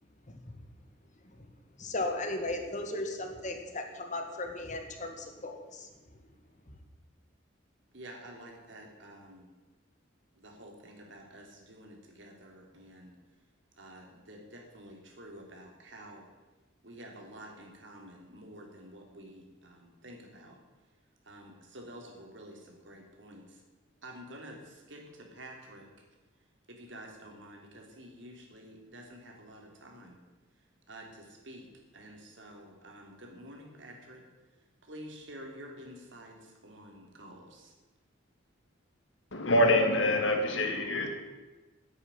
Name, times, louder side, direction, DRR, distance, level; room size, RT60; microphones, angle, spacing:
voice 1, 1.8-5.9, left 2 dB, 40° left, 5 dB, 1.9 m, -36 dB
voice 2, 7.9-9.5 10.4-13.2 13.8-16.3 16.8-20.6 21.2-23.6 24.0-25.9 26.7-30.2 30.9-31.7 31.9-34.2 34.8-37.7, right 1 dB, 65° right, 1 dB, 3.4 m, -49 dB
voice 3, 39.3-41.1, left 1 dB, 70° left, 4 dB, 2.3 m, -25 dB
10.5 x 9.6 x 9.8 m, 1.2 s
head